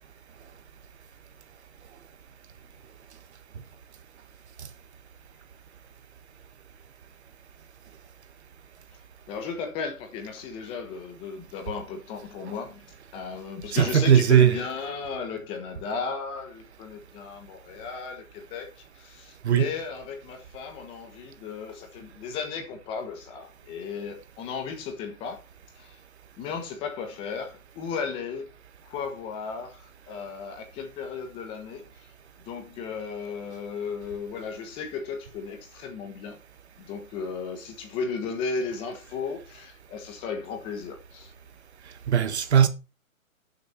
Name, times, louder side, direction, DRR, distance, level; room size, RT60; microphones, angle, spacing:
voice 1, 9.3-12.8 13.1-25.4 25.8-26.0 26.4-28.5 28.8-32.1 32.5-36.4 36.8-41.3, left 5 dB, 15° left, 1.1 m, -35 dB
voice 2, 13.7-14.5 19.4-19.7 42.1-42.7, right 9 dB, 50° right, 1.6 m, -18 dB
12.0 x 6.9 x 4.2 m
hypercardioid pair, 155°, 41 cm